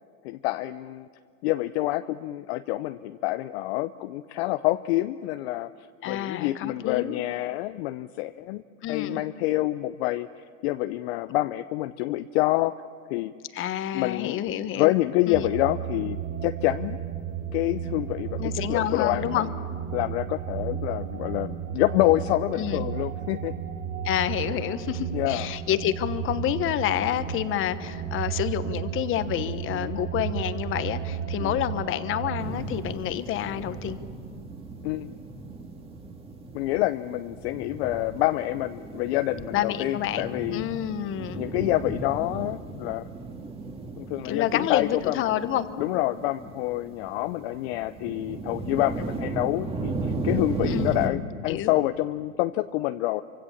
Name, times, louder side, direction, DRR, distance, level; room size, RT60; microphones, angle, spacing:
voice 1, 0.2-1.1 1.4-5.7 6.0-8.6 8.9-12.7 13.1-13.3 13.9-14.4 14.7-17.0 17.5-19.5 19.9-23.5 25.1-25.5 29.7-30.0 31.4-31.5 34.8-35.1 36.5-40.6 41.4-43.1 44.0-45.2 45.8-53.2, left 17 dB, 50° left, 11 dB, 0.7 m, -27 dB
voice 2, 6.0-7.2 8.8-9.2 13.5-14.9 15.3-15.5 18.4-19.5 22.6-22.8 24.0-34.0 39.5-41.4 44.2-45.7 50.7-51.7, left 11 dB, 30° left, 12 dB, 1.2 m, -28 dB
sound 1, 15.3-32.5, right 9 dB, 40° right, 4.2 m, -33 dB
sound 2, 32.4-51.1, right 3 dB, 15° right, 2.0 m, -36 dB
27.0 x 25.0 x 7.3 m, 2.2 s
hypercardioid pair, 130°, 40 cm